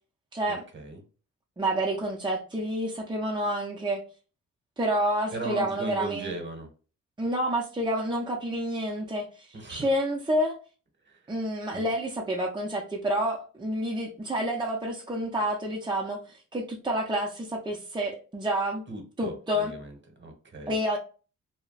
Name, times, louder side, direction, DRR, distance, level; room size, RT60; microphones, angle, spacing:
voice 1, 0.3-0.6 1.6-4.0 4.8-6.3 7.2-10.6 11.3-18.8 19.2-19.7 20.7-21.0, right 1 dB, 15° right, 0.5 m, -29 dB
voice 2, 5.3-6.7 9.5-9.9 11.1-11.2 11.7-11.9 18.9-20.7, right 1 dB, 35° right, 1.0 m, -37 dB
2.2 x 2.1 x 3.8 m
cardioid pair, 70°, 31 cm